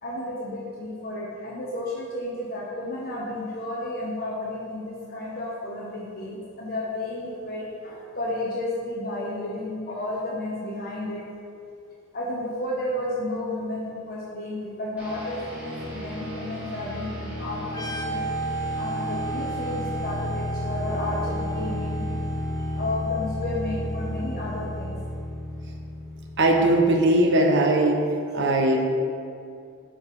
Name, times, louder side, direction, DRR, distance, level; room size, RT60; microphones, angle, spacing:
voice 1, 0.0-11.2 12.1-18.2 18.8-22.0 22.7-25.0 28.4-28.5, left 1 dB, 45° left, -5 dB, 1.0 m, -32 dB
sound 1, 15.0-27.2, left 1 dB, 5° right, 1.9 m, -33 dB
sound 2, 17.7-25.2, right 4 dB, 20° left, 0.7 m, -35 dB
voice 2, 26.4-28.1 28.3-28.8, right 1 dB, 60° right, 2 dB, 1.0 m, -19 dB
7.1 x 5.0 x 5.4 m, 2.5 s
head